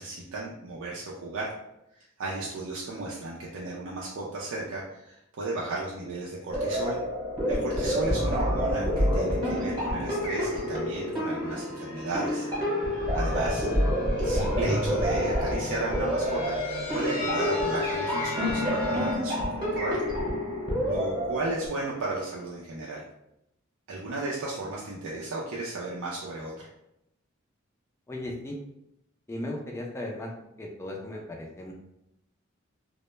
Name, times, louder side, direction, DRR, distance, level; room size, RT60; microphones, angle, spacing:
voice 1, 0.0-1.5 2.2-7.0 7.5-12.5 13.1-13.7 14.2-20.0 20.9-23.0 23.9-26.7, right 2 dB, 75° right, -5 dB, 0.4 m, -34 dB
sound 1, 6.5-21.7, equal, 25° right, 0.9 m, -28 dB
sound 2, 11.4-19.2, left 1 dB, 85° left, 0.7 m, -36 dB
voice 2, 28.1-28.6 29.3-30.3 30.6-31.7, left 1 dB, 15° left, 0 dB, 0.3 m, -36 dB
2.1 x 2.0 x 3.0 m, 0.82 s
head